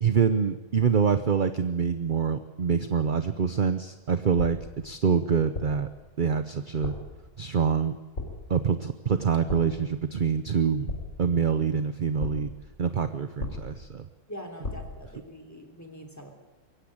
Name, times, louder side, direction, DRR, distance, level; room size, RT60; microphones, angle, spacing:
voice 1, 0.0-4.6 4.8-5.9 6.2-6.9 7.4-8.0 8.5-10.9 11.2-12.5 12.8-14.1, right 6 dB, 45° right, 10 dB, 0.7 m, -25 dB
sound 1, 4.4-4.8 5.5-6.0 6.8-7.2 8.2-8.6 9.5-9.9 10.9-11.4 12.2-12.6 13.4-13.9 14.6-15.1, left 3 dB, 50° left, 4.1 m, -36 dB
voice 2, 14.3-16.3, equal, 10° left, 5 dB, 3.2 m, -43 dB
22.5 x 16.0 x 8.7 m, 1.2 s
omnidirectional pair, 1.7 m